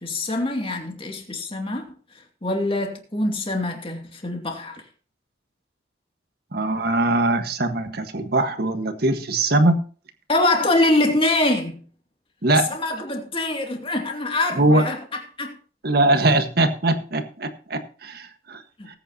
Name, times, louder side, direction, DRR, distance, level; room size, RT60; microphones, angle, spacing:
voice 1, 0.0-1.8 2.4-4.8 10.3-11.8 12.5-15.0 15.4-15.5 18.8-18.9, left 2 dB, 30° left, 2.5 m, -24 dB
voice 2, 6.5-9.8 12.4-12.7 14.6-14.8 15.8-18.6, right 2 dB, 55° right, 1.6 m, -21 dB
19.5 x 9.0 x 2.9 m
head